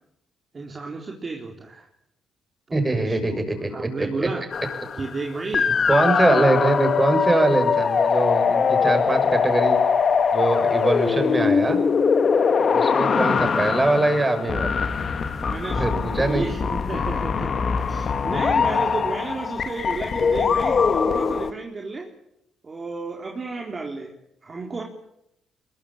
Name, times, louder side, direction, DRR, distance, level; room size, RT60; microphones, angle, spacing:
voice 1, 0.5-1.9 3.1-3.4 3.7-4.5 5.0-5.8 6.3-6.4 15.4-22.1 22.6-24.1 24.4-24.8, right 3 dB, 35° right, 1 dB, 3.8 m, -32 dB
voice 2, 2.7-4.3 5.9-9.8 10.3-11.8 12.7-14.8 15.7-16.5, right 2 dB, 20° right, 7 dB, 6.7 m, -22 dB
sound 1, 4.5-5.2 5.5-21.5, left 6 dB, 45° left, 2.0 m, -22 dB
22.5 x 22.0 x 8.7 m, 0.80 s
cardioid pair, 90°, 0 cm